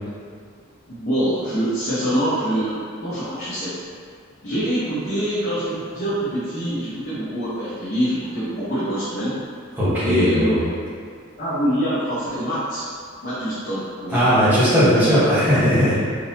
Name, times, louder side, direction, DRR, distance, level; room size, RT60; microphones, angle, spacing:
voice 1, 0.9-3.7 4.4-9.3 10.0-10.7 11.4-12.9 13.2-14.2 14.5-15.0, equal, 50° left, -13 dB, 1.0 m, -25 dB
voice 2, 9.8-10.6 14.1-16.0, equal, 10° right, -13 dB, 1.1 m, -17 dB
3.8 x 2.9 x 2.8 m, 2.1 s
head